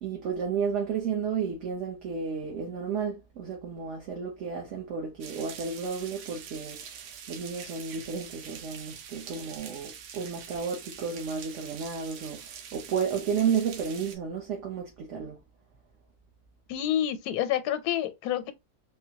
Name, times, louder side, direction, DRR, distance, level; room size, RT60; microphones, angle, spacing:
voice 1, 0.0-15.4, right 6 dB, 60° right, 0.9 m, -32 dB
sound 1, 5.2-14.1, right 8 dB, 85° right, 1.2 m, -44 dB
voice 2, 16.7-18.5, left 11 dB, 85° left, 1.1 m, -28 dB
3.8 x 2.1 x 2.7 m
omnidirectional pair, 1.7 m